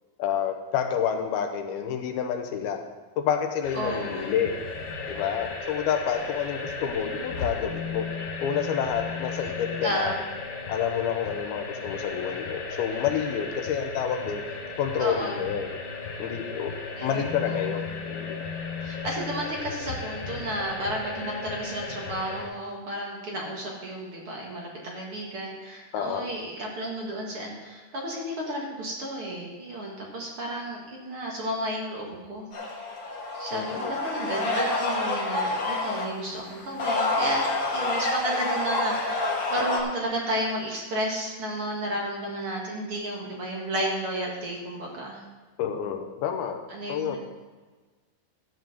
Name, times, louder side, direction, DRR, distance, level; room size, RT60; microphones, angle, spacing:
voice 1, 0.2-2.8 3.2-4.6 5.1-8.1 8.4-10.1 10.7-14.4 14.8-15.8 16.2-16.7 17.0-18.4 25.9-26.3 33.5-33.9 45.6-46.6 46.9-47.2, left 8 dB, 80° left, 4 dB, 2.8 m, -29 dB
sound 1, 3.6-22.4, left 4 dB, 65° left, 3.3 m, -35 dB
voice 2, 3.7-4.3 9.8-10.2 15.0-15.4 17.0-17.8 18.8-32.5 33.3-45.2 46.7-47.2, right 1 dB, 45° right, -2 dB, 2.0 m, -32 dB
sound 2, 32.5-36.0 36.6-39.8, left 2 dB, 50° left, 1.4 m, -28 dB
12.5 x 5.2 x 7.7 m, 1.3 s
omnidirectional pair, 4.4 m